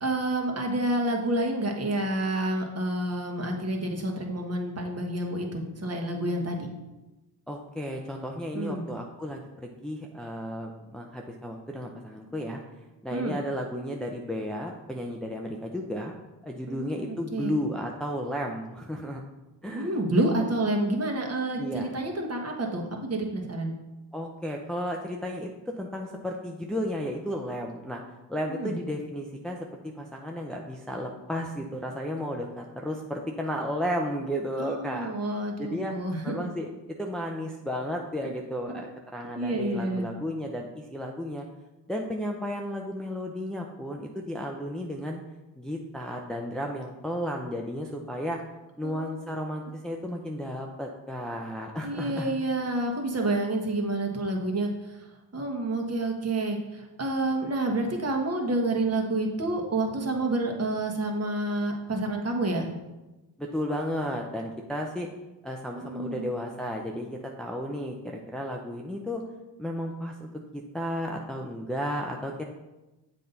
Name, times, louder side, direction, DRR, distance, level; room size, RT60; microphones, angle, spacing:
voice 1, 0.0-6.7 8.5-8.8 13.1-13.4 16.7-17.6 19.6-23.7 28.5-28.7 34.6-36.5 38.7-38.8 39.4-40.1 48.8-49.2 51.8-55.0 55.3-62.7 65.7-66.3, right 2 dB, 35° right, 2 dB, 1.5 m, -29 dB
voice 2, 7.5-12.6 13.0-16.1 16.4-19.2 19.6-19.9 21.6-21.9 24.1-28.0 28.3-35.1 35.6-35.9 36.2-36.7 37.0-41.4 41.9-45.2 45.6-48.4 48.8-52.3 63.4-65.1 65.4-69.2 69.6-70.3 70.5-72.4, equal, ahead, 0 dB, 0.6 m, -33 dB
7.4 x 4.2 x 4.0 m, 1.1 s
supercardioid pair, 70°, 45 cm